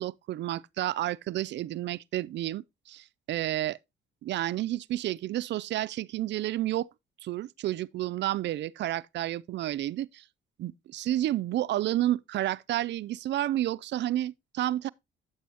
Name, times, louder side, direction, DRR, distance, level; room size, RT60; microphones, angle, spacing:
voice 1, 0.0-3.8 4.2-6.9 7.2-10.2 10.6-14.9, right 14 dB, 65° right, 0.4 m, -30 dB
8.5 x 8.3 x 2.8 m
cardioid pair, 90°, 20 cm